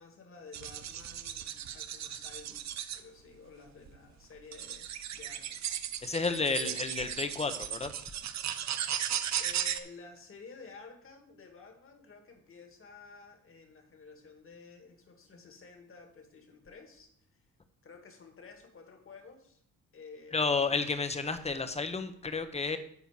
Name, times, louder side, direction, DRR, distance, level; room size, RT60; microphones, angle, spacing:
voice 1, 0.0-5.7 6.5-6.8 9.4-17.5 17.8-19.6 19.9-20.5, left 4 dB, 45° left, 3 dB, 2.2 m, -52 dB
sound 1, 0.5-3.0 3.9-4.0 4.5-9.8, right 10 dB, 65° right, 0.8 m, -36 dB
voice 2, 6.0-7.9 20.3-22.8, left 4 dB, 20° left, 9 dB, 1.0 m, -31 dB
9.7 x 4.5 x 7.5 m, 0.67 s
cardioid pair, 90°, 30 cm